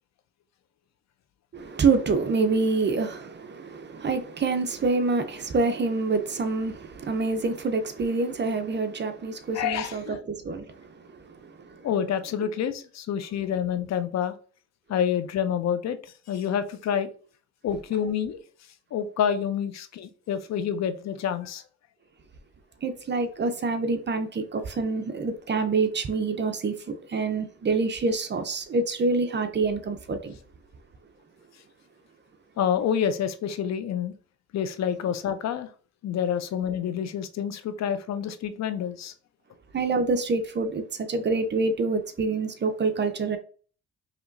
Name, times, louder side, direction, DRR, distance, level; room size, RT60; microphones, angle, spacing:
voice 1, 1.5-11.9 22.8-30.4 39.7-43.4, right 3 dB, 35° right, 0.7 m, -27 dB
voice 2, 9.5-10.2 11.8-14.3 14.9-16.0 16.3-17.1 17.6-18.4 18.9-21.6 32.6-34.1 34.5-35.7 36.0-39.1, left 8 dB, 60° left, 0.6 m, -28 dB
5.0 x 2.9 x 2.6 m
cardioid pair, 90°, 30 cm